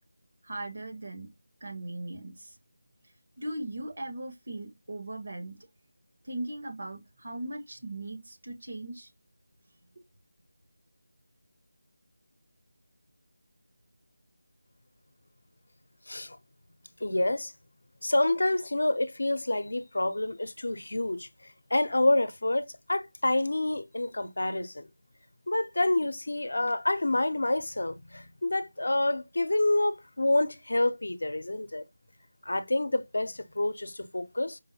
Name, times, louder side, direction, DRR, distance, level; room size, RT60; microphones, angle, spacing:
voice 1, 0.4-1.3 1.6-2.6 3.4-5.6 6.2-9.1, right 1 dB, 55° right, 1.5 m, -38 dB
voice 2, 16.1-16.4 17.0-17.5 18.0-21.3 21.7-24.9 25.5-31.8 32.5-34.6, left 2 dB, 75° left, 0.6 m, -28 dB
4.9 x 2.2 x 2.8 m
figure-of-eight pair, 170°, 0 cm